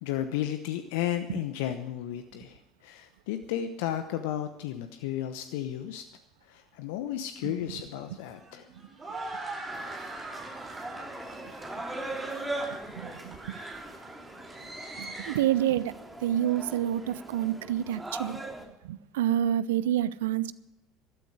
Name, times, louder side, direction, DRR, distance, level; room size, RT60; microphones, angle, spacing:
voice 1, 0.0-6.0 6.5-8.7, left 11 dB, 70° left, 9 dB, 0.9 m, -33 dB
sound 1, 7.4-15.4, right 2 dB, 25° right, 7.5 m, -42 dB
sound 2, 9.7-18.6, right 2 dB, 10° right, 3.2 m, -40 dB
voice 2, 13.0-13.5 15.0-15.9 16.2-18.4 18.8-20.5, right 11 dB, 75° right, 18 dB, 0.6 m, -28 dB
16.0 x 13.0 x 4.9 m, 0.89 s
figure-of-eight pair, 65°, 0 cm